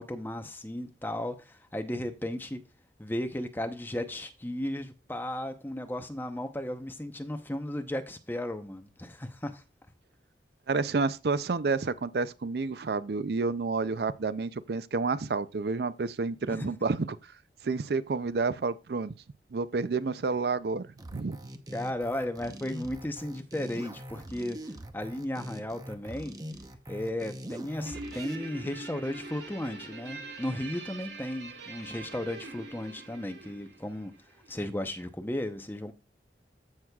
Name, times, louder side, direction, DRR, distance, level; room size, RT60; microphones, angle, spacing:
voice 1, 0.0-2.6 3.0-9.6 16.5-16.7 21.7-24.6 24.9-26.4 26.9-34.1 34.5-35.9, left 1 dB, 10° left, 0.8 m, -35 dB
voice 2, 10.7-17.2 17.6-19.1 19.5-21.4, right 4 dB, 65° right, 0.5 m, -30 dB
sound 1, 21.0-28.4, equal, 20° right, 0.8 m, -42 dB
Guitar, 27.9-34.5, right 2 dB, 80° right, 2.6 m, -44 dB
14.5 x 6.2 x 2.3 m
head